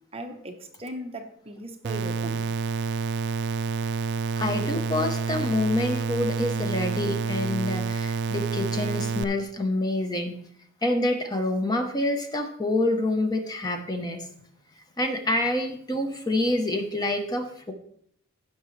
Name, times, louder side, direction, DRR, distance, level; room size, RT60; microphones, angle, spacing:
voice 1, 0.1-2.5, right 1 dB, 25° right, 0.9 m, -38 dB
sound 1, 1.8-9.2, right 4 dB, 50° right, 0.4 m, -28 dB
voice 2, 4.4-10.4 10.8-14.2 15.0-17.7, left 1 dB, 20° left, 0.9 m, -27 dB
16.0 x 6.1 x 3.2 m
head